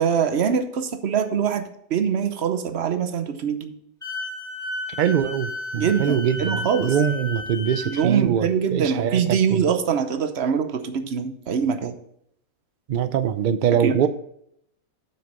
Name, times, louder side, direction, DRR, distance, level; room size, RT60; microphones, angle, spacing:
voice 1, 0.0-3.7 5.7-6.9 7.9-12.0 13.8-14.0, right 7 dB, 55° right, 9 dB, 1.0 m, -23 dB
Wind instrument woodwind instrument, 4.0-8.1, left 2 dB, ahead, 3.1 m, -33 dB
voice 2, 5.0-9.6 12.9-14.1, right 8 dB, 90° right, 11 dB, 0.4 m, -23 dB
7.1 x 6.4 x 5.3 m, 0.73 s
omnidirectional pair, 1.5 m